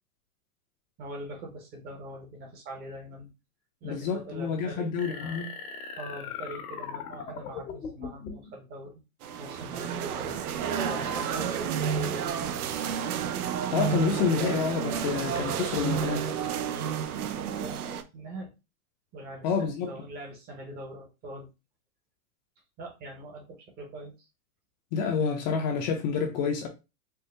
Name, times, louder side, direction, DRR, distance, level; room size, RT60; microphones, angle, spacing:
voice 1, 1.0-3.3 3.8-5.5 6.0-8.9 9.4-12.6 16.7-18.5 19.1-21.5 22.8-24.3, right 1 dB, 20° right, 0.8 m, -42 dB
voice 2, 3.8-5.5 13.7-16.3 19.4-19.9 24.9-26.7, left 6 dB, 30° left, 0.5 m, -28 dB
sound 1, 5.0-8.5, left 6 dB, 85° left, 1.4 m, -39 dB
sound 2, 9.2-18.0, right 8 dB, 90° right, 0.6 m, -31 dB
4.5 x 2.1 x 3.2 m
supercardioid pair, 155°, 43 cm